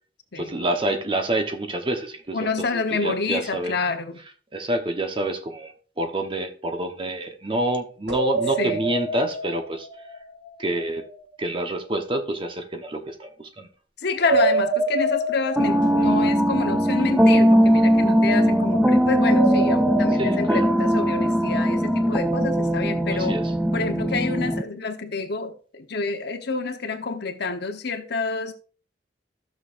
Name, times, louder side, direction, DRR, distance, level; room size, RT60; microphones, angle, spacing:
voice 1, 0.3-3.8 4.5-9.9 10.6-11.1 11.4-13.7 20.1-20.7 23.1-23.5, right 1 dB, 30° right, 1.1 m, -28 dB
voice 2, 2.3-4.2 8.6-8.8 14.0-23.4 23.7-28.5, left 4 dB, 65° left, 1.1 m, -28 dB
sound 1, 8.1-11.0 14.2-17.5 19.2-22.0, right 2 dB, 80° right, 5.5 m, -28 dB
sound 2, 15.6-24.6, equal, 5° right, 0.6 m, -20 dB
14.5 x 6.5 x 2.6 m
head